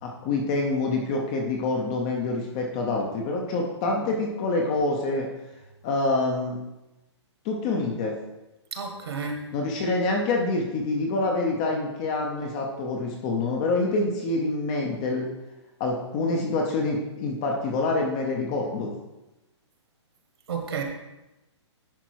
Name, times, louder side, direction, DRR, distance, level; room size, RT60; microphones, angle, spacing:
voice 1, 0.0-5.3 5.8-6.6 7.4-8.1 9.5-15.3 15.8-18.9, left 2 dB, 15° left, 1 dB, 0.5 m, -26 dB
voice 2, 8.7-9.4 20.5-20.8, right 5 dB, 60° right, 3 dB, 1.6 m, -31 dB
10.0 x 4.5 x 4.5 m, 0.98 s
hypercardioid pair, 175°, 15 cm